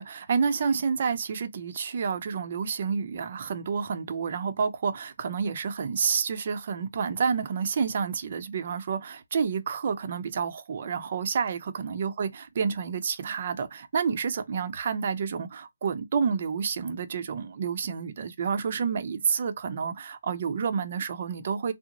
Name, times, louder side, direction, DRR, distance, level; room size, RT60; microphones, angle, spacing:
voice 1, 0.0-21.7, right 6 dB, 40° right, 0.6 m, -29 dB
3.6 x 2.0 x 2.9 m
hypercardioid pair, 165°, 0 cm